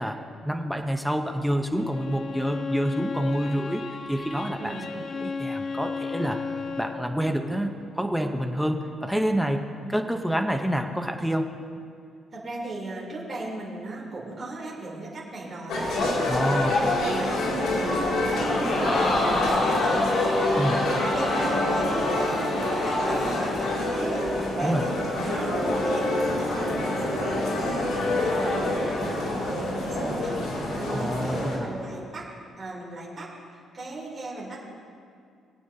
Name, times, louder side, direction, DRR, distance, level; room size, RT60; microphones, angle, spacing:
voice 1, 0.0-3.8 4.1-4.8 5.2-6.4 6.8-11.5 16.3-16.8 20.6-20.9 24.6-24.8 30.9-31.7, equal, ahead, 4 dB, 0.7 m, -27 dB
Bowed string instrument, 1.8-7.1, left 4 dB, 35° left, 0.7 m, -34 dB
voice 2, 4.6-5.0 12.3-32.2 32.6-33.3 33.7-34.6, right 2 dB, 30° right, -6 dB, 2.9 m, -36 dB
sound 1, 15.7-31.6, left 1 dB, 85° left, 3.0 m, -27 dB
Crowd, 18.4-23.8 24.2-24.3, left 2 dB, 55° left, 2.0 m, -27 dB
23.0 x 8.3 x 2.7 m, 2.3 s
cardioid pair, 155°, 0 cm